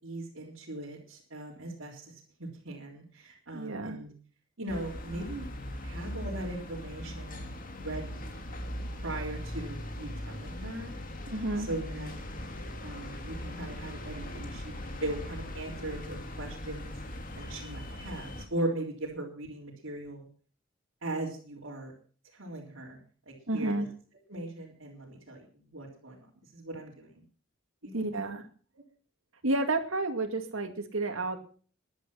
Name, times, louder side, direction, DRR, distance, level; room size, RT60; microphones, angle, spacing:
voice 1, 0.0-4.1 4.6-5.5 5.8-8.3 9.0-10.9 11.6-12.2 12.8-16.9 17.4-20.3 21.0-21.9 22.3-23.0 23.3-23.7 24.3-25.4 25.7-26.2 26.5-27.2 27.8-28.3, right 1 dB, 70° right, -6 dB, 3.8 m, -39 dB
voice 2, 3.5-4.0 11.3-11.7 23.5-23.9 27.9-28.4 29.4-31.4, right 2 dB, 85° right, 6 dB, 2.3 m, -30 dB
sound 1, 4.7-18.5, left 1 dB, 45° left, 2.4 m, -40 dB
15.5 x 11.0 x 5.8 m, 0.43 s
head